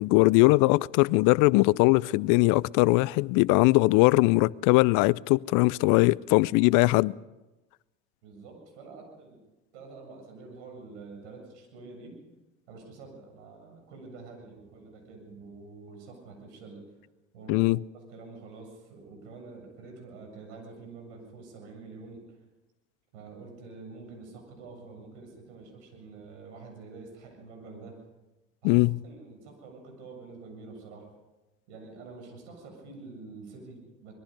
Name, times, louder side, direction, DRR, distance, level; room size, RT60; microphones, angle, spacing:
voice 1, 0.0-7.2 17.5-17.8 28.6-29.0, left 22 dB, 60° left, 0.6 m, -21 dB
voice 2, 8.2-9.4 9.7-12.1 12.7-16.8 17.3-17.7 18.1-22.2 23.1-27.9 28.6-28.8 29.0-31.1 31.7-34.1, right 3 dB, 75° right, 7.6 m, -47 dB
24.5 x 21.5 x 5.3 m
hypercardioid pair, 75°, 36 cm